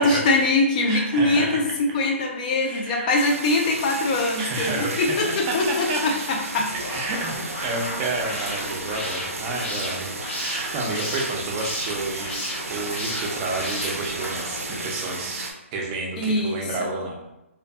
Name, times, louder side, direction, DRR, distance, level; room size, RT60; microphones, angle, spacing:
voice 1, 0.0-6.7 16.2-16.9, left 2 dB, 30° left, 1 dB, 0.5 m, -23 dB
voice 2, 0.8-1.8 2.6-3.2 4.4-6.0 6.9-12.4 12.7-17.2, right 2 dB, 25° right, -1 dB, 0.5 m, -30 dB
sound 1, 3.2-15.5, right 3 dB, 85° right, 0.5 m, -34 dB
sound 2, 6.7-14.9, left 1 dB, 55° left, 0.9 m, -34 dB
2.5 x 2.5 x 2.3 m, 0.91 s
hypercardioid pair, 150°, 8 cm